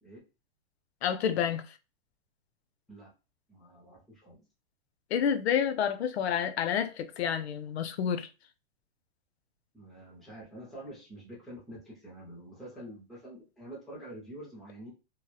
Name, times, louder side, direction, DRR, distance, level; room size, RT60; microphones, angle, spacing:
voice 1, 1.0-1.7 5.1-8.3, left 8 dB, 90° left, 0.5 m, -29 dB
voice 2, 3.5-4.4 9.7-14.9, right 1 dB, ahead, 0.3 m, -47 dB
3.0 x 2.1 x 2.2 m
hypercardioid pair, 155°, 31 cm